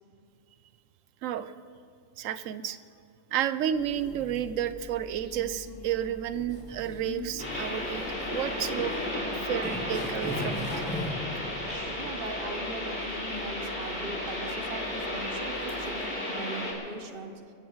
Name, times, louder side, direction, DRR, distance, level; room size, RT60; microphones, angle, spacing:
voice 1, 1.2-1.5 2.2-2.8 3.3-8.0 8.3-8.9 9.3-10.9, right 10 dB, 85° right, 13 dB, 1.0 m, -31 dB
sound 1, 3.7-16.1, left 1 dB, 75° left, 2.9 m, -46 dB
sound 2, 6.5-7.2 7.5-7.7 8.3-8.4 8.7-8.8 9.6-11.3, left 1 dB, 10° left, 2.8 m, -36 dB
sound 3, 7.4-16.7, left 1 dB, 40° left, 3.4 m, -33 dB
voice 2, 12.0-17.4, right 2 dB, 50° right, 7 dB, 1.1 m, -41 dB
23.0 x 15.0 x 3.1 m, 2.3 s
omnidirectional pair, 1.3 m